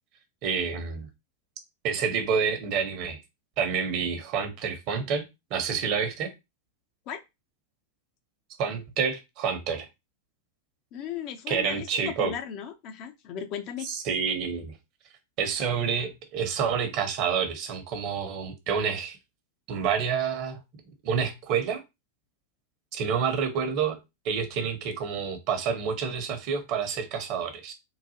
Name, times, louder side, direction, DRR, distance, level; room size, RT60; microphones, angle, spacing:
voice 1, 0.4-1.1 1.8-3.2 3.6-5.2 5.5-6.3 8.6-9.9 11.5-12.3 13.8-14.7 15.4-19.2 19.7-20.6 21.0-21.8 22.9-24.0 24.2-27.7, right 6 dB, 40° right, 1.0 m, -28 dB
voice 2, 10.9-13.9, left 9 dB, 40° left, 0.6 m, -36 dB
3.8 x 2.5 x 2.8 m
figure-of-eight pair, 90°, 0 cm